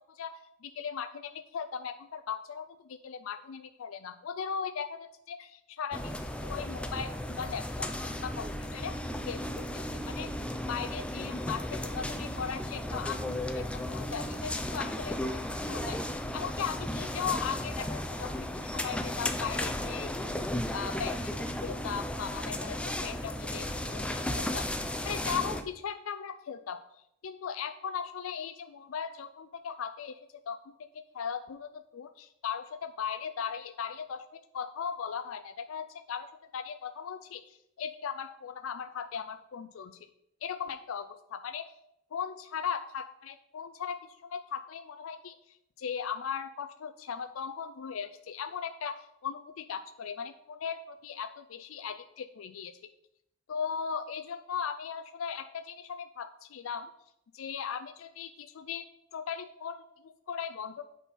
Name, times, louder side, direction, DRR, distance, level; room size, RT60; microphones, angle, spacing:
voice 1, 0.0-8.9 9.2-10.3 10.7-16.0 16.3-20.4 20.7-24.6 25.0-26.8 27.2-30.6 30.9-40.0 40.4-41.7 42.1-45.4 45.8-52.7 53.5-56.9 57.3-60.9, left 7 dB, 90° left, 9 dB, 0.4 m, -38 dB
sound 1, 5.9-25.6, left 1 dB, 5° left, 0.5 m, -35 dB
8.2 x 4.2 x 5.6 m, 0.80 s
head